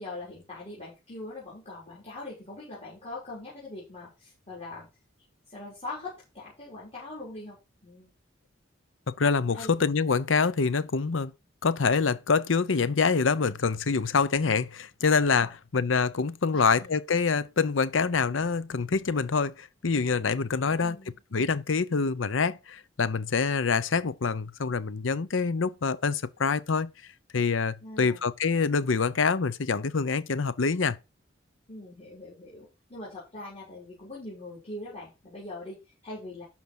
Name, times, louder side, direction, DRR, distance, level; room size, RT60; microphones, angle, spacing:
voice 1, 0.0-4.9 5.5-8.1 9.5-9.7 15.4-15.5 16.5-17.0 20.6-21.2 27.8-28.3 31.7-36.4, left 2 dB, 35° left, 4.1 m, -42 dB
voice 2, 9.1-11.3 11.6-21.0 21.3-26.9 27.3-31.0, left 5 dB, 90° left, 0.7 m, -26 dB
12.0 x 4.5 x 5.5 m
head